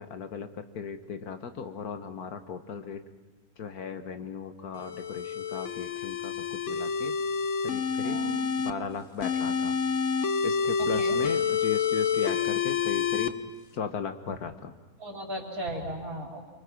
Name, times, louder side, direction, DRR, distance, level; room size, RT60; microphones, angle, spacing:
voice 1, 0.0-3.0 3.6-7.2 7.6-8.2 8.6-9.8 10.4-13.4 13.7-14.7, left 6 dB, 75° left, 8 dB, 1.8 m, -37 dB
sound 1, 4.8-8.7 9.2-13.3, left 6 dB, 55° left, 1.1 m, -28 dB
voice 2, 8.0-8.4 10.8-11.2 15.0-16.5, right 1 dB, 65° right, 1 dB, 4.4 m, -36 dB
27.0 x 24.5 x 6.0 m, 1.3 s
omnidirectional pair, 1.6 m